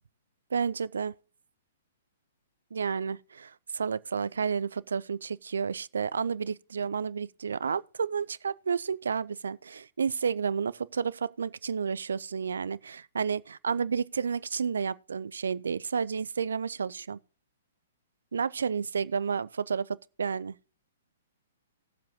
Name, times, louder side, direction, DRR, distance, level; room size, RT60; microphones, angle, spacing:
voice 1, 0.5-1.1 2.7-17.2 18.3-20.6, right 6 dB, 65° right, 0.4 m, -31 dB
18.5 x 7.4 x 3.0 m
figure-of-eight pair, 115°, 0 cm